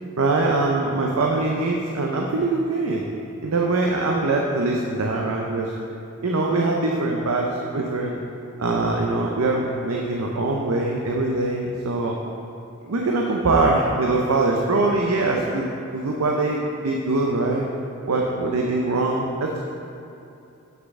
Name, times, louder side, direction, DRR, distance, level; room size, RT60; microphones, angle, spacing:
voice 1, 0.2-3.0 3.4-5.7 6.2-8.2 8.6-12.1 12.8-15.7 15.9-17.7 18.1-19.6, right 2 dB, 85° right, 0 dB, 0.6 m, -23 dB
7.4 x 6.5 x 3.6 m, 2.8 s
head